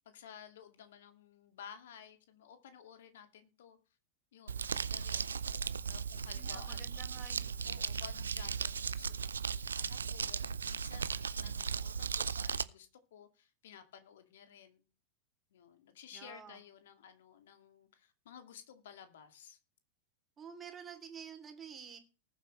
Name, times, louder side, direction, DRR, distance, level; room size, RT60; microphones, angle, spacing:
voice 1, 0.1-3.8 4.3-5.4 5.9-6.9 7.6-14.8 15.5-19.6, left 8 dB, 60° left, 8 dB, 2.2 m, -54 dB
Crumpling crinkling, 4.5-12.6, right 6 dB, 70° right, 0.6 m, -37 dB
voice 2, 6.3-8.4 16.1-16.6 20.4-22.0, right 7 dB, 20° right, 7 dB, 2.9 m, -51 dB
19.5 x 7.8 x 3.2 m, 0.33 s
figure-of-eight pair, 90°, 0 cm